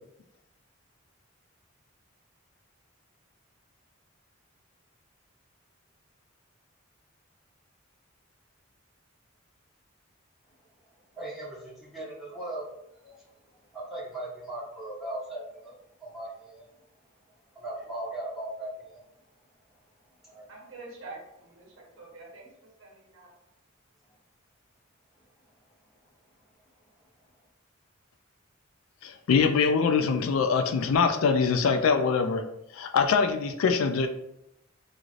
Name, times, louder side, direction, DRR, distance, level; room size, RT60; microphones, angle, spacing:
voice 1, 11.1-12.6 12.9-13.2 13.7-16.7 17.5-19.0 20.2-20.5, right 1 dB, ahead, -12 dB, 1.3 m, -38 dB
voice 2, 20.5-22.5 22.8-23.3, right 3 dB, 70° right, -1 dB, 0.9 m, -46 dB
voice 3, 29.0-32.4 32.8-34.1, left 5 dB, 75° left, 7 dB, 0.3 m, -23 dB
3.1 x 2.5 x 2.5 m, 0.82 s
head